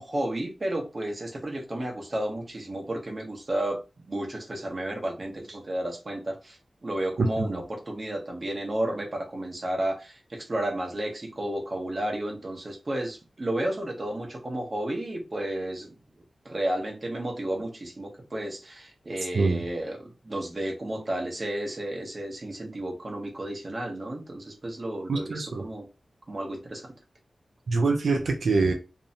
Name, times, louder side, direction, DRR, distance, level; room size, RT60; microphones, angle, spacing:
voice 1, 0.0-3.8 4.1-6.6 6.8-15.9 16.4-25.8 26.3-26.9, right 1 dB, 40° right, 0 dB, 0.7 m, -32 dB
voice 2, 7.2-7.5 19.3-19.6 25.1-25.7 27.7-28.7, right 3 dB, 85° right, 3 dB, 0.4 m, -24 dB
2.6 x 2.1 x 2.6 m, 0.30 s
wide cardioid pair, 100°, 0 cm